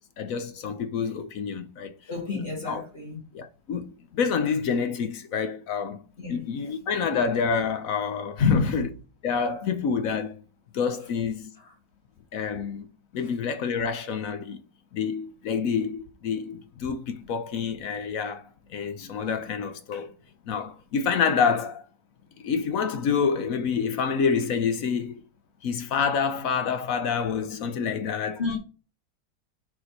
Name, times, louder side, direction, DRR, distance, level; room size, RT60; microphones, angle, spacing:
voice 1, 0.2-1.9 2.6-2.8 3.3-6.0 6.3-8.9 9.2-10.4 10.7-11.5 12.3-12.9 13.1-14.6 14.9-20.1 20.5-21.8 22.4-25.2 25.6-28.4, left 6 dB, 65° left, 0.9 m, -28 dB
voice 2, 2.1-3.2 6.2-6.5 8.4-8.9 11.6-11.7 18.9-19.3 28.4-28.6, left 5 dB, 40° left, 1.7 m, -28 dB
6.7 x 4.3 x 4.1 m
omnidirectional pair, 1.9 m